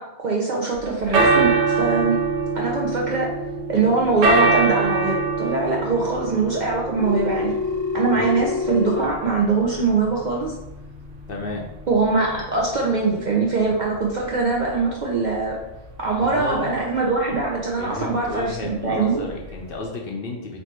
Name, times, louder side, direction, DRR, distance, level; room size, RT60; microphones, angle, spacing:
voice 1, 0.0-2.2 2.5-3.3 3.7-7.6 7.9-10.6 11.9-15.6 16.0-19.2, right 4 dB, 50° right, -2 dB, 0.6 m, -22 dB
sound 1, 0.8-19.8, right 4 dB, 85° right, 1.0 m, -26 dB
Telephone, 7.0-9.0, left 5 dB, 85° left, 1.1 m, -26 dB
voice 2, 11.3-11.7 16.2-16.9 17.8-20.6, left 2 dB, 60° left, 0 dB, 0.7 m, -31 dB
3.3 x 2.7 x 4.2 m, 0.93 s
omnidirectional pair, 1.3 m